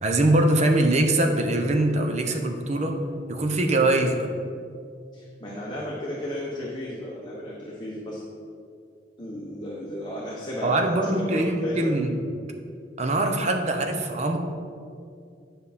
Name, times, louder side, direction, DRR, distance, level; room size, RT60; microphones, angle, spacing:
voice 1, 0.0-3.0 3.3-4.3 10.6-12.2 13.0-14.4, right 1 dB, 40° right, 4 dB, 0.8 m, -23 dB
voice 2, 5.1-8.2 9.2-11.9, equal, 25° left, -5 dB, 1.1 m, -34 dB
9.7 x 5.6 x 4.2 m, 2.3 s
head